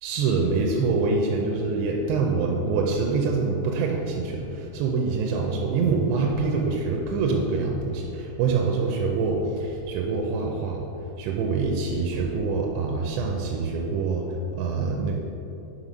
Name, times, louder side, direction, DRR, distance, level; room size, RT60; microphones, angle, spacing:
voice 1, 0.0-10.9 11.2-14.3 14.6-15.2, right 4 dB, 85° right, 0 dB, 2.7 m, -25 dB
7.3 x 3.8 x 5.1 m, 2.9 s
omnidirectional pair, 5.0 m